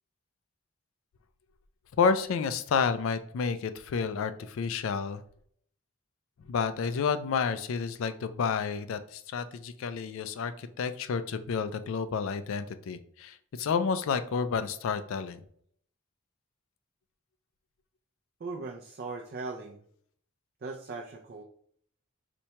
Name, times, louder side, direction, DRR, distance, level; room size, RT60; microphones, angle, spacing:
voice 1, 2.0-5.2 6.5-15.4, left 5 dB, 65° left, 11 dB, 0.3 m, -30 dB
voice 2, 18.4-19.8 20.6-21.4, right 3 dB, 45° right, 1 dB, 0.3 m, -39 dB
4.3 x 2.2 x 2.8 m, 0.62 s
head